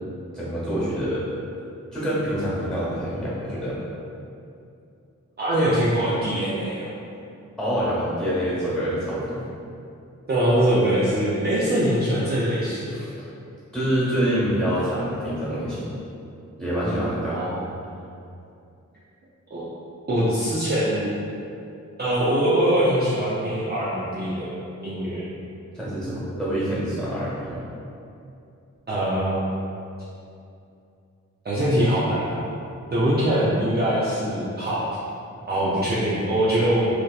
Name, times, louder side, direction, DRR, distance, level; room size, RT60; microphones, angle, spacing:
voice 1, 0.3-1.3 1.9-3.8 7.6-9.4 12.9-13.1 13.7-15.9 16.6-17.4 25.7-27.6, equal, ahead, -9 dB, 1.2 m, -26 dB
voice 2, 5.4-6.9 10.3-12.9 17.3-17.7 19.5-19.7 20.1-21.1 22.0-25.2 28.9-29.5 31.4-32.4 32.9-34.8 35.5-36.9, right 1 dB, 35° right, -9 dB, 0.5 m, -23 dB
2.8 x 2.1 x 2.3 m, 2.6 s
cardioid pair, 55°, 30 cm